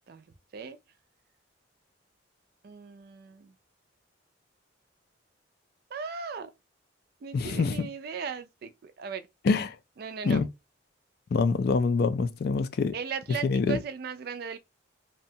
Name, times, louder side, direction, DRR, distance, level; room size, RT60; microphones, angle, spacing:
voice 1, 2.6-3.6 5.9-6.5 7.2-9.3 10.0-10.4 12.9-14.6, right 6 dB, 50° right, 0.3 m, -37 dB
voice 2, 7.3-7.9 9.4-9.8 10.2-10.5 11.3-12.9 13.4-13.8, left 4 dB, 50° left, 0.3 m, -25 dB
2.7 x 2.2 x 2.7 m
head